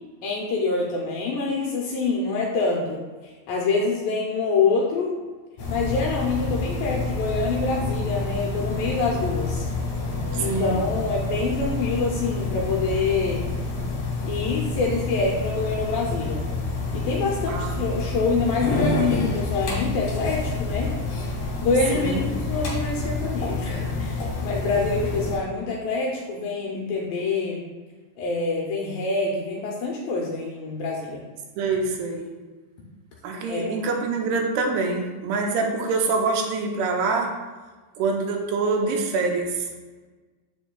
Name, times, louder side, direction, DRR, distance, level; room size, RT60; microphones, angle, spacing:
voice 1, 0.2-5.1 5.7-9.7 10.4-13.5 14.2-16.4 16.9-20.9 21.6-27.6 28.2-31.2 33.5-33.7, left 3 dB, 75° left, -2 dB, 2.1 m, -26 dB
sound 1, 5.6-25.4, left 3 dB, 60° left, 2.3 m, -28 dB
voice 2, 10.3-10.8 17.5-17.8 21.9-22.2 31.6-32.3 33.2-37.4 38.0-39.7, right 4 dB, 85° right, 2 dB, 2.7 m, -25 dB
7.1 x 6.9 x 2.3 m, 1.3 s
omnidirectional pair, 4.7 m